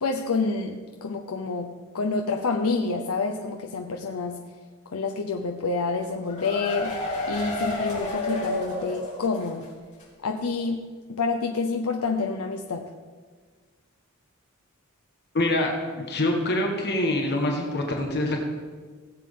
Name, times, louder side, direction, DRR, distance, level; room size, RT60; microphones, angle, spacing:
voice 1, 0.0-4.4 4.9-9.7 10.2-10.8 11.1-12.9, left 4 dB, 85° left, 3 dB, 0.7 m, -28 dB
sound 1, 6.0-9.6 9.9-10.0 10.4-10.5, left 1 dB, 35° left, 3.5 m, -31 dB
voice 2, 15.3-18.4, left 1 dB, 50° left, 1 dB, 1.4 m, -25 dB
17.5 x 7.6 x 3.7 m, 1.5 s
head